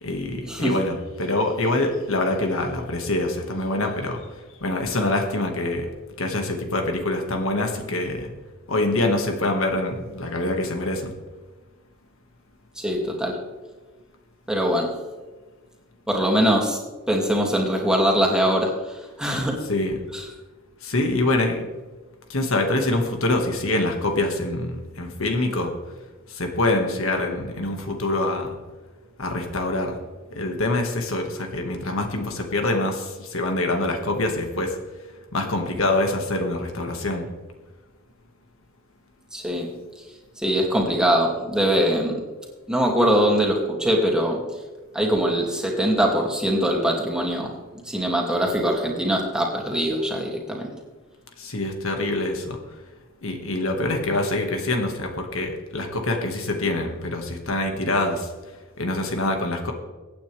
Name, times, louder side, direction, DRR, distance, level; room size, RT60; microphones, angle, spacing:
voice 1, 0.0-4.2 4.6-5.9 6.2-8.3 8.7-11.1 19.7-20.0 20.8-21.7 22.3-25.8 26.3-28.5 29.2-30.0 30.3-34.8 35.3-37.3 51.4-52.6 53.2-58.3 58.8-59.7, left 2 dB, 70° left, 3 dB, 1.9 m, -25 dB
voice 2, 12.8-13.4 14.5-14.9 16.1-16.8 17.1-19.6 20.1-20.2 39.3-39.7 40.4-42.1 42.7-44.4 44.9-47.5 47.8-50.7, equal, 5° right, -1 dB, 2.5 m, -22 dB
24.0 x 9.3 x 3.5 m, 1.3 s
head